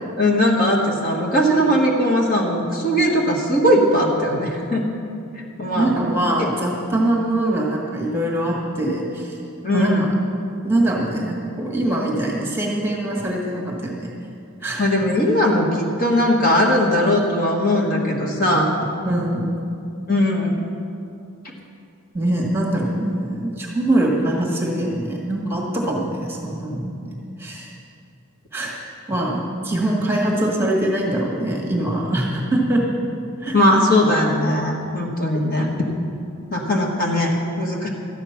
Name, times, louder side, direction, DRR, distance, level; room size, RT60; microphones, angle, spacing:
voice 1, 0.2-4.8 5.6-5.9 6.4-6.5 9.6-10.1 14.8-18.7 20.1-20.7 33.5-35.9 36.5-37.9, left 1 dB, 40° left, -1 dB, 1.4 m, -19 dB
voice 2, 5.8-9.4 9.7-9.9 10.6-14.1 14.6-14.8 19.0-19.5 22.1-27.7 28.5-28.7 29.1-32.8 33.4-33.5, right 1 dB, 10° right, -2 dB, 1.7 m, -23 dB
13.5 x 9.0 x 5.9 m, 2.6 s
head